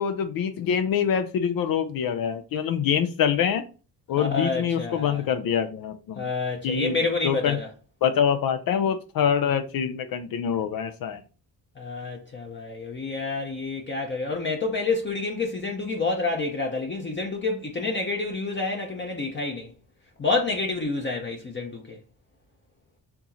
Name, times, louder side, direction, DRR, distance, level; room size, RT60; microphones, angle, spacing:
voice 1, 0.0-3.6 4.1-6.3 6.6-7.0 7.2-7.6 8.0-11.2, left 8 dB, 65° left, 0.5 m, -25 dB
voice 2, 4.2-5.3 6.2-7.7 11.8-19.7 20.2-22.0, left 3 dB, 30° left, 0.7 m, -28 dB
4.5 x 2.8 x 2.6 m
cardioid pair, 80°, 38 cm